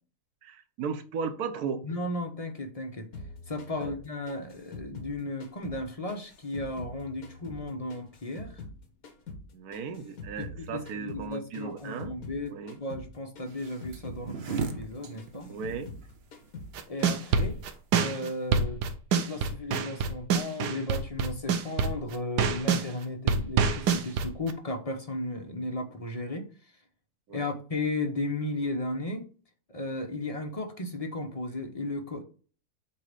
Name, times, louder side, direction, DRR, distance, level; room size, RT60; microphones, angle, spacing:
voice 1, 0.4-1.9 3.8-3.9 9.5-12.2 12.5-12.8 15.5-15.9 27.3-27.5, right 6 dB, 70° right, 1.3 m, -36 dB
voice 2, 1.8-3.1 3.5-8.6 10.4-15.5 16.9-17.6 18.0-18.8 19.1-26.7 27.3-29.3 29.7-32.2, left 2 dB, 35° left, 0.6 m, -35 dB
sound 1, 3.1-5.8 6.1-8.8 9.0-12.4 12.7-13.1 13.3-16.1 16.3-16.7 17.0-17.6, left 3 dB, 60° left, 1.8 m, -44 dB
sound 2, 13.5-18.6, right 5 dB, 50° right, 0.9 m, -39 dB
sound 3, 16.7-22.9 23.3-24.5, right 5 dB, 90° right, 1.4 m, -26 dB
8.5 x 3.1 x 5.1 m
omnidirectional pair, 1.7 m